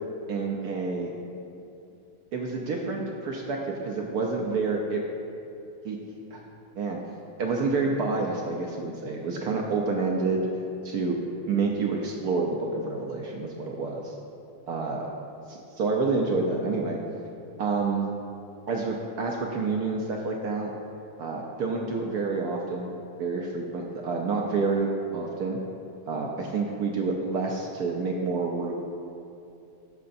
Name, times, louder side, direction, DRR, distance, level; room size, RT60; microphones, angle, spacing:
voice 1, 0.3-1.1 2.3-5.0 5.8-6.0 6.3-6.4 6.8-7.0 7.4-10.5 10.8-11.2 11.5-14.1 14.7-15.1 15.5-17.0 17.6-18.1 18.7-20.7 21.2-22.9 23.2-25.6 26.1-28.7, right 4 dB, 70° right, 0 dB, 0.9 m, -28 dB
10.5 x 6.6 x 2.6 m, 2.7 s
omnidirectional pair, 2.2 m